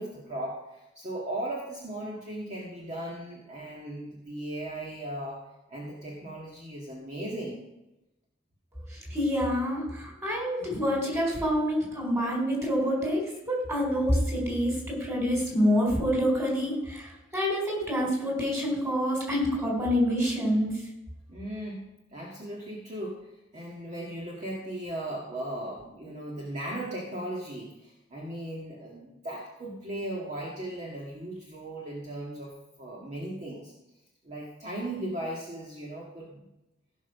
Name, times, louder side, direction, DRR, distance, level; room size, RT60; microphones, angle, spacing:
voice 1, 0.0-5.4 5.7-7.6 21.3-33.7 34.2-36.5, right 1 dB, 35° right, -3 dB, 1.9 m, -37 dB
voice 2, 8.9-20.7, equal, 15° right, -1 dB, 4.2 m, -27 dB
16.5 x 5.5 x 5.9 m, 0.94 s
head